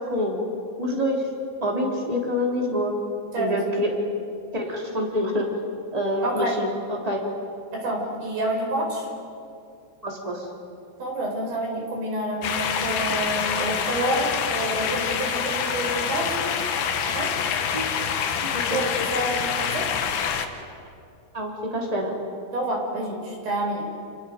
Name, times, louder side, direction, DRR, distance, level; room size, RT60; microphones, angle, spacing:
voice 1, 0.8-1.2 1.6-2.9 3.4-3.9 4.5-5.5 5.9-7.2 10.0-10.5 17.7-17.8 18.5-18.8 21.3-22.1, equal, 10° right, -1 dB, 2.1 m, -26 dB
voice 2, 6.2-6.5 7.7-9.1 11.0-16.5 17.1-17.3 18.7-19.8 22.5-23.9, right 1 dB, 45° right, 0 dB, 6.0 m, -28 dB
sound 1, 12.4-20.5, left 7 dB, 65° left, 2.5 m, -26 dB
29.5 x 29.0 x 5.2 m, 2.5 s
omnidirectional pair, 5.8 m